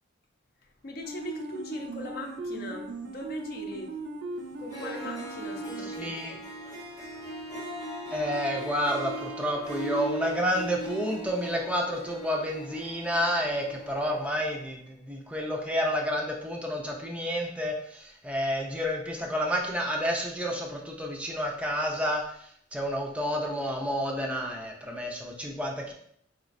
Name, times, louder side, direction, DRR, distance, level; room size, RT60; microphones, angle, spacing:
voice 1, 0.6-4.0 4.6-6.4, left 2 dB, 50° left, 3 dB, 0.6 m, -40 dB
sound 1, 1.0-6.3, right 3 dB, 65° right, 0.5 m, -39 dB
Harp, 4.4-4.5 4.7-14.2, right 1 dB, 20° left, 0.9 m, -39 dB
voice 2, 6.0-6.4 8.1-25.9, equal, 5° right, 0 dB, 0.4 m, -30 dB
4.8 x 3.0 x 2.5 m, 0.68 s
head